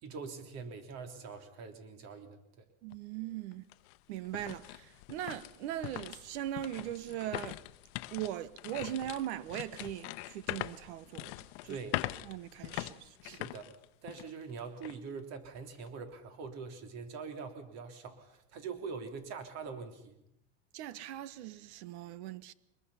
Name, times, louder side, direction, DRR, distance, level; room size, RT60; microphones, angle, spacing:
voice 1, 0.0-2.7 11.7-12.0 13.2-13.7 14.0-20.2, right 5 dB, 50° right, 3.5 m, -44 dB
voice 2, 2.8-3.6 4.1-7.6 8.1-11.8 12.2-13.4 20.7-22.5, right 12 dB, 80° right, 1.2 m, -40 dB
sound 1, 2.9-3.0 3.5-14.4 14.8-15.0 15.5-15.9, left 19 dB, 70° left, 0.9 m, -42 dB
24.0 x 21.0 x 5.7 m
supercardioid pair, 135°, 33 cm